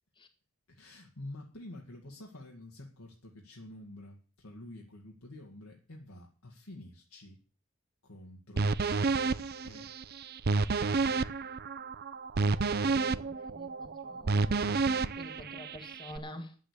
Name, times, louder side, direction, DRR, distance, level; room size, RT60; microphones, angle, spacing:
voice 1, 0.7-7.4 8.0-8.7 9.6-9.9 10.9-11.2, left 1 dB, 75° left, 2.1 m, -48 dB
sound 1, 8.6-16.2, right 4 dB, 45° right, 0.6 m, -30 dB
voice 2, 12.9-14.6 15.2-16.5, left 1 dB, 20° left, 1.6 m, -48 dB
10.5 x 7.7 x 8.4 m
head